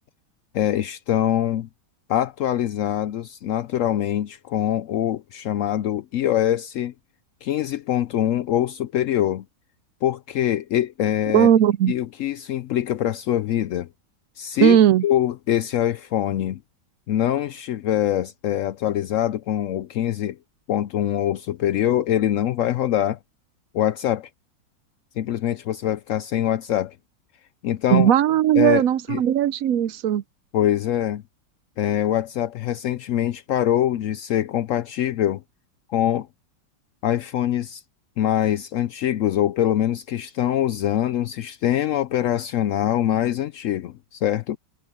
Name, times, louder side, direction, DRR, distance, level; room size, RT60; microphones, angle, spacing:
voice 1, 0.5-1.7 2.1-6.9 7.4-9.4 10.0-11.5 11.9-13.9 14.4-14.8 15.0-16.6 17.1-20.4 20.7-23.2 23.7-24.3 25.2-26.9 27.6-28.1 28.6-28.8 29.1-29.2 30.5-31.2 31.8-35.4 35.9-36.3 37.0-37.8 38.2-44.6, left 11 dB, 90° left, 0.7 m, -23 dB
voice 2, 11.3-11.9 14.6-15.0 27.9-30.2, right 10 dB, 70° right, 0.8 m, -17 dB
omnidirectional pair, 1.9 m